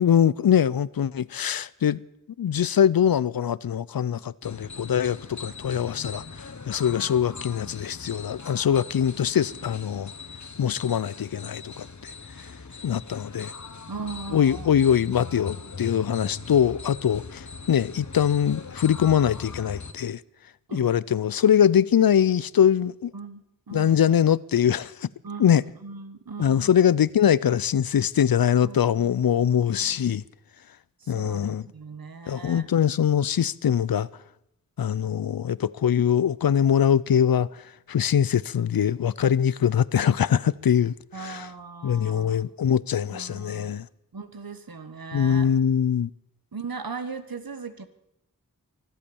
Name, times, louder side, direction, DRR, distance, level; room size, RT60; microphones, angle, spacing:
voice 1, 0.0-2.0 2.4-6.2 6.7-10.1 10.6-12.1 12.8-13.5 14.3-20.2 20.7-23.1 23.7-25.1 25.4-25.6 26.4-30.2 31.1-31.6 32.3-34.1 34.8-37.5 37.9-41.5 41.8-43.9 45.1-46.1, left 9 dB, 80° left, 0.5 m, -22 dB
sound 1, 4.4-19.9, left 4 dB, 55° left, 1.2 m, -40 dB
voice 2, 13.9-15.0 20.7-20.9 23.1-24.0 25.2-27.0 28.6-30.1 31.0-32.7 41.1-42.4 43.1-43.8 44.1-45.5 46.5-47.9, right 4 dB, 80° right, 1.3 m, -39 dB
24.0 x 8.4 x 7.0 m
wide cardioid pair, 40°, 35 cm